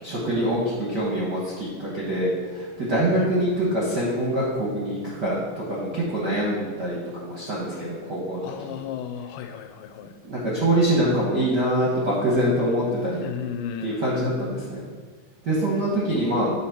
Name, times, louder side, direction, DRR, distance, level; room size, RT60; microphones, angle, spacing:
voice 1, 0.0-8.7 10.2-13.2 13.8-14.8 15.4-16.5, right 1 dB, 65° right, -6 dB, 1.0 m, -24 dB
voice 2, 8.4-10.1 13.2-14.5, left 8 dB, 80° left, 6 dB, 2.0 m, -35 dB
8.2 x 2.8 x 5.9 m, 1.5 s
omnidirectional pair, 3.7 m